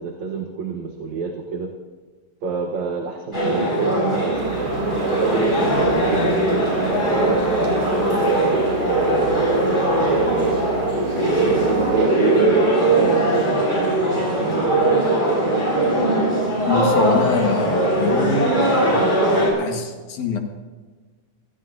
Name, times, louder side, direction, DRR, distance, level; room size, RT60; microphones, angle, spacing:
voice 1, 0.0-1.7 2.4-4.7 5.2-10.5 11.4-13.3 13.8-14.9, right 5 dB, 75° right, 2 dB, 2.7 m, -28 dB
sound 1, 3.3-19.5, right 1 dB, 15° left, 6.1 m, -20 dB
sound 2, 4.3-12.1, right 5 dB, 90° right, 3.5 m, -32 dB
voice 2, 16.7-18.6 19.6-20.4, left 5 dB, 80° left, 3 dB, 3.1 m, -23 dB
26.0 x 17.0 x 2.8 m, 1.4 s
omnidirectional pair, 3.4 m